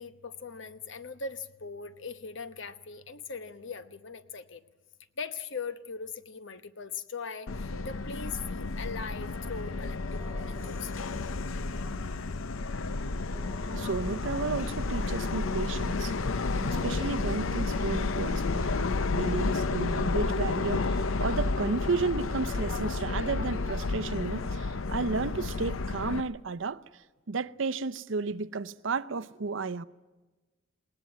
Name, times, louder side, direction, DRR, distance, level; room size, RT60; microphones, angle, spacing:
voice 1, 0.0-4.6 5.2-10.9 20.0-20.2, left 5 dB, 65° left, 1.0 m, -40 dB
Subway metro underground, 7.5-26.2, left 3 dB, 90° left, 0.7 m, -31 dB
sound 1, 10.2-19.4, right 2 dB, 20° left, 2.2 m, -54 dB
voice 2, 13.7-16.2 16.6-26.8 27.3-29.8, right 4 dB, 70° right, 0.7 m, -33 dB
Car / Engine starting, 16.0-22.2, equal, 35° left, 1.2 m, -48 dB
20.5 x 18.5 x 9.5 m
head